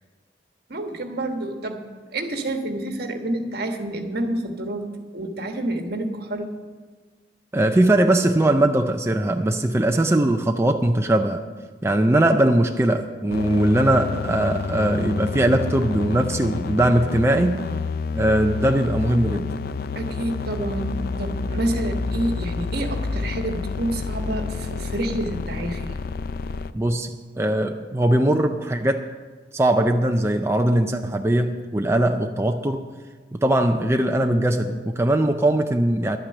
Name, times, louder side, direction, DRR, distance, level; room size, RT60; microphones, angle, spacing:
voice 1, 0.7-1.8 2.1-4.9 5.1-6.6 19.9-26.0, right 1 dB, 60° right, 5 dB, 1.3 m, -28 dB
voice 2, 7.5-11.4 11.8-17.6 18.1-19.5 26.7-29.1 29.5-32.9 33.3-36.2, right 1 dB, 15° right, 4 dB, 0.5 m, -20 dB
sound 1, 13.3-26.7, left 4 dB, 60° left, 0.4 m, -29 dB
11.5 x 9.1 x 6.6 m, 1.4 s
head